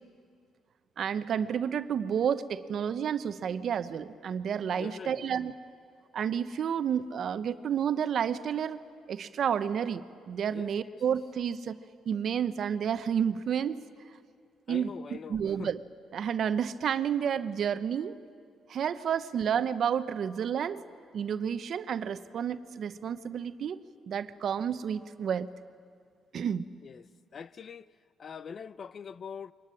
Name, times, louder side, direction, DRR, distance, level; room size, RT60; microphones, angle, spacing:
voice 1, 1.0-5.5 6.1-8.8 9.1-11.8 12.1-13.8 14.7-14.9 15.3-15.8 16.1-18.2 18.7-20.8 21.1-23.8 24.1-25.5 26.3-26.6, right 8 dB, 60° right, 0.9 m, -30 dB
voice 2, 4.8-5.3 10.5-11.0 14.7-15.7 26.8-27.1 27.3-27.9 28.2-29.5, left 6 dB, 50° left, 0.6 m, -43 dB
24.0 x 19.5 x 9.9 m
cardioid pair, 90°, 0 cm